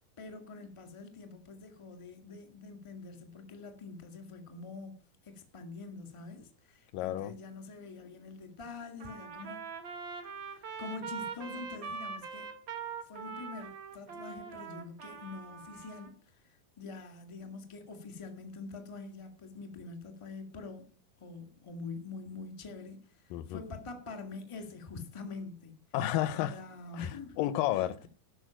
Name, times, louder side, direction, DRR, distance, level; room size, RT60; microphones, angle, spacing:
voice 1, 0.2-9.6 10.5-12.5 13.0-20.9 21.2-25.8 26.3-27.4 27.7-28.1, left 4 dB, 20° left, 0.9 m, -45 dB
voice 2, 6.9-7.3 23.3-23.6 25.9-26.6 26.9-28.1, left 13 dB, 80° left, 2.2 m, -32 dB
Trumpet, 9.0-16.1, right 6 dB, 50° right, 1.5 m, -42 dB
12.5 x 5.3 x 8.9 m
omnidirectional pair, 4.2 m